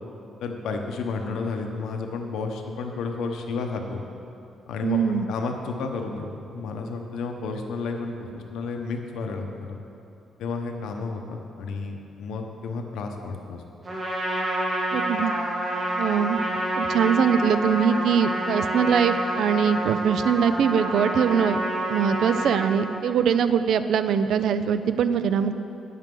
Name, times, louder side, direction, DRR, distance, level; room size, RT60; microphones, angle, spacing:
voice 1, 0.4-4.0 4.7-9.8 10.4-13.6, left 4 dB, 85° left, 3 dB, 0.9 m, -32 dB
voice 2, 4.8-5.3 14.9-15.3 16.0-16.4 16.8-21.6 21.9-25.5, right 7 dB, 65° right, 11 dB, 0.4 m, -22 dB
Trumpet, 13.8-22.9, right 1 dB, 20° right, 1.5 m, -28 dB
11.0 x 9.0 x 3.8 m, 2.7 s
cardioid pair, 165°, 0 cm